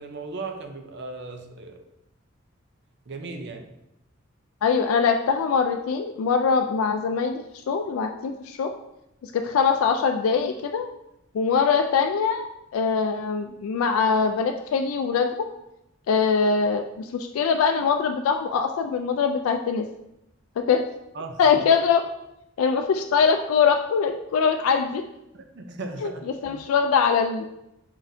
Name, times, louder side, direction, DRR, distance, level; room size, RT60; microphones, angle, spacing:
voice 1, 0.0-1.8 3.1-3.7 21.1-21.4 25.3-26.3, right 3 dB, 55° right, 5 dB, 0.6 m, -36 dB
voice 2, 4.6-8.7 9.2-10.9 11.3-12.5 12.7-15.3 16.1-19.8 20.6-20.8 21.4-22.0 22.6-25.0 26.0-26.1 26.4-27.4, left 6 dB, 90° left, 5 dB, 0.3 m, -22 dB
4.7 x 4.0 x 2.7 m, 0.85 s
head